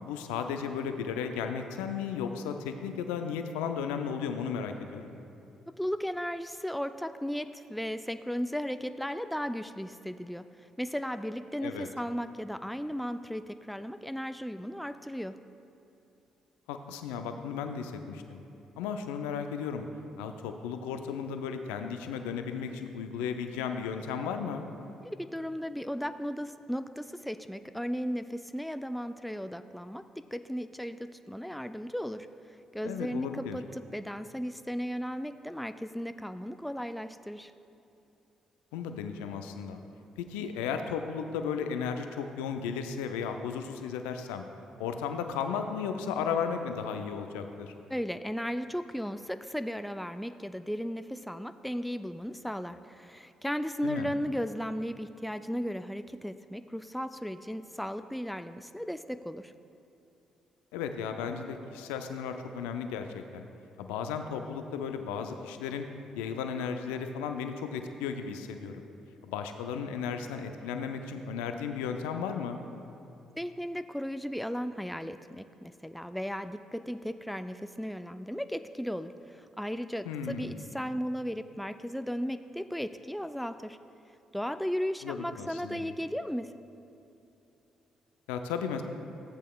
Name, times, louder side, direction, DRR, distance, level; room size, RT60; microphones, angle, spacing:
voice 1, 0.0-5.1 11.6-11.9 16.7-18.4 18.8-19.8 20.2-24.7 32.8-33.6 38.7-39.8 40.2-44.5 44.8-47.7 53.8-54.1 60.7-63.4 63.8-65.9 66.1-68.7 69.2-72.6 80.1-80.5 85.0-85.9 88.3-88.8, left 6 dB, 80° left, 6 dB, 0.4 m, -35 dB
voice 2, 5.8-10.4 10.8-15.3 25.0-30.0 30.3-32.3 32.7-37.5 47.9-59.5 73.4-83.8 84.3-86.5, equal, ahead, 10 dB, 0.3 m, -35 dB
14.0 x 8.2 x 2.3 m, 2.8 s
hypercardioid pair, 45°, 2 cm